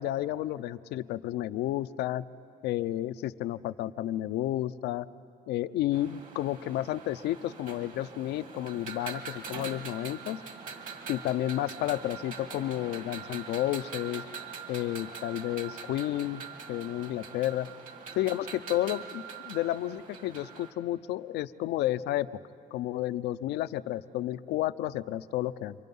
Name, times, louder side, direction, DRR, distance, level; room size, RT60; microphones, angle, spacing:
voice 1, 0.0-2.2 2.6-5.1 5.5-10.4 11.1-14.2 14.7-16.4 16.7-17.7 18.2-22.3 22.7-25.8, left 14 dB, 80° left, 14 dB, 0.6 m, -31 dB
sound 1, 5.9-20.7, right 6 dB, 50° right, 2.1 m, -43 dB
29.0 x 23.5 x 5.4 m, 2.5 s
cardioid pair, 110°, 17 cm